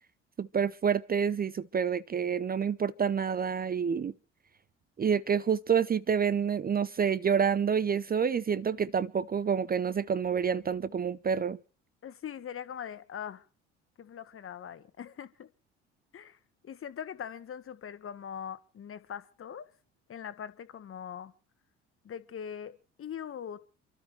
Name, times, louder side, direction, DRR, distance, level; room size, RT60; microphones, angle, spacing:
voice 1, 0.4-4.1 5.0-11.6, right 7 dB, 25° right, 0.7 m, -28 dB
voice 2, 12.0-13.4 14.0-15.5 16.1-16.4 16.6-19.7 20.1-21.3 22.0-23.6, left 8 dB, 40° left, 1.6 m, -41 dB
29.0 x 13.0 x 3.3 m
hypercardioid pair, 60°, 35 cm